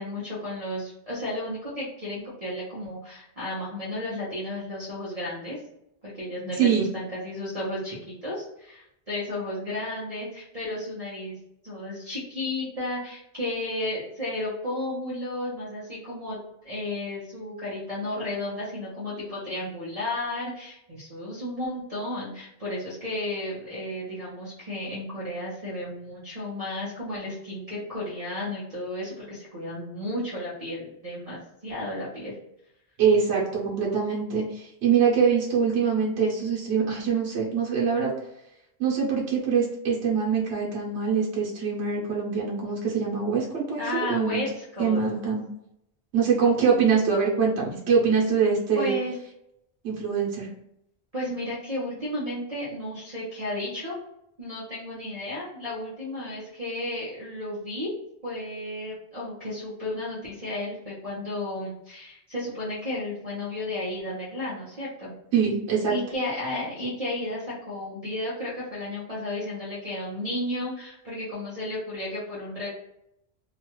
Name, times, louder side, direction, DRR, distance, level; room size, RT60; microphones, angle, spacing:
voice 1, 0.0-5.6 6.0-11.4 11.6-16.4 16.6-32.4 43.8-45.2 48.8-49.1 51.1-54.0 54.4-57.9 58.2-65.1 65.9-72.7, left 1 dB, 35° right, -8 dB, 0.8 m, -33 dB
voice 2, 6.6-6.9 33.0-38.1 38.8-43.8 44.1-44.4 44.8-45.4 46.1-48.9 49.8-50.5 65.3-66.0, right 6 dB, 85° right, -3 dB, 1.1 m, -24 dB
2.9 x 2.3 x 2.9 m, 0.81 s
omnidirectional pair, 1.1 m